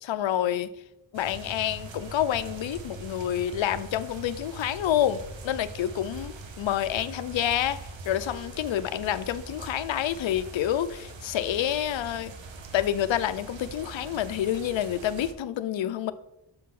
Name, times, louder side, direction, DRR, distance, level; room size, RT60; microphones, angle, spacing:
voice 1, 0.0-0.7 1.1-12.3 12.7-16.1, left 11 dB, 85° left, 14 dB, 0.6 m, -28 dB
sound 1, 1.1-15.3, right 3 dB, 75° right, 1.0 m, -42 dB
6.8 x 3.7 x 5.9 m, 0.88 s
wide cardioid pair, 140°, 45 cm